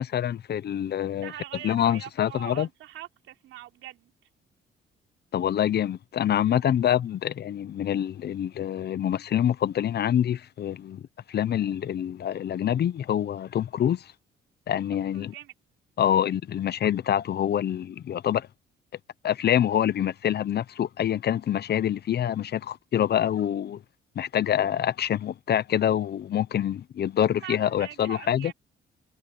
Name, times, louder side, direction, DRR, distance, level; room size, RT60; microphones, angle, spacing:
voice 1, 0.0-1.3 1.6-2.7 5.3-11.0 11.3-14.1 14.7-15.3 16.0-18.5 19.2-23.8 24.2-28.5, left 10 dB, 55° left, 0.8 m, -26 dB
voice 2, 1.2-4.1 14.9-15.5 16.1-16.4 27.2-28.5, right 13 dB, 90° right, 3.9 m, -42 dB
cardioid pair, 90°, 20 cm